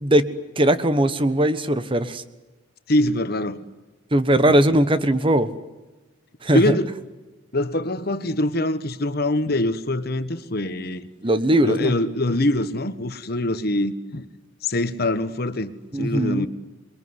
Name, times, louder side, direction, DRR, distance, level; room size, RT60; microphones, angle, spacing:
voice 1, 0.0-2.2 4.1-5.5 6.4-6.8 11.2-11.9 15.9-16.5, right 1 dB, 25° right, 1.2 m, -19 dB
voice 2, 2.9-3.6 4.5-4.6 6.5-6.9 7.5-11.1 11.6-14.2 14.6-16.5, left 1 dB, 55° left, 1.4 m, -24 dB
27.5 x 22.0 x 9.7 m
head